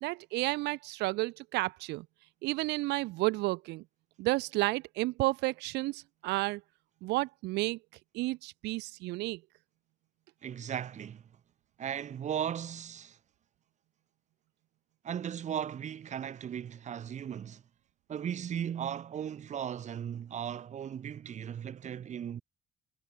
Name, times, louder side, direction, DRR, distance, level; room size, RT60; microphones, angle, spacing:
voice 1, 0.0-2.1 2.4-3.8 4.2-6.6 7.0-7.8 8.1-9.4, right 20 dB, 90° right, 1.2 m, -31 dB
voice 2, 10.4-11.2 11.8-13.2 15.0-17.6 18.1-22.4, right 9 dB, 45° right, 1.3 m, -37 dB
cardioid pair, 110°, 17 cm